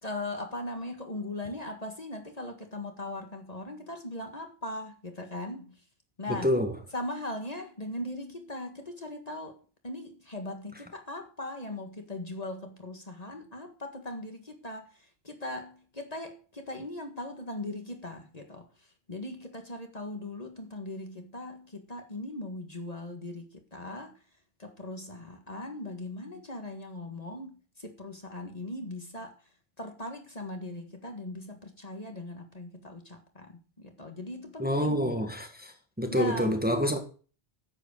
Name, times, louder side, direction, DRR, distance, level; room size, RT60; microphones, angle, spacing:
voice 1, 0.0-5.8 6.2-6.5 6.9-9.6 9.8-18.7 19.1-24.1 24.6-29.3 29.8-35.0 36.1-36.6, left 1 dB, 40° left, 1.9 m, -39 dB
voice 2, 6.3-6.7 34.6-35.7 36.0-37.0, equal, 10° right, 1.7 m, -27 dB
10.0 x 8.2 x 6.5 m
omnidirectional pair, 1.1 m